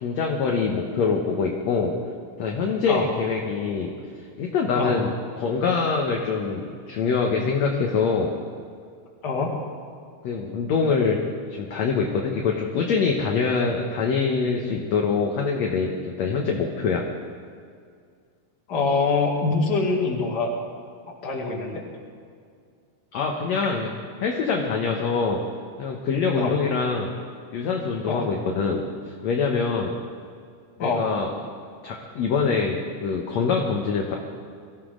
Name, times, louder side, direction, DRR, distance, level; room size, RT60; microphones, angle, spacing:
voice 1, 0.0-1.9 2.4-4.0 4.4-8.3 10.2-11.2 11.5-17.0 23.1-23.9 24.2-25.4 25.8-27.1 27.5-28.8 29.2-29.9 30.8-31.3 31.8-34.2, left 5 dB, 65° left, 1 dB, 2.0 m, -24 dB
voice 2, 18.7-20.5 21.1-21.8 26.4-26.5 28.1-28.3 30.8-31.1, left 4 dB, 35° left, -1 dB, 2.3 m, -24 dB
23.0 x 15.0 x 3.9 m, 2.2 s
omnidirectional pair, 4.1 m